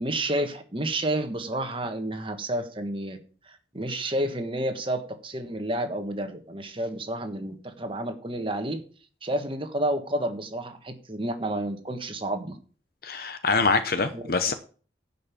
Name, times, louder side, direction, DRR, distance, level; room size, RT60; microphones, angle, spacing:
voice 1, 0.0-3.2 3.4-8.8 9.2-12.6 14.1-14.5, right 1 dB, 30° right, 1.5 m, -30 dB
voice 2, 13.0-14.5, left 4 dB, 55° left, 0.8 m, -24 dB
11.0 x 5.5 x 7.0 m
head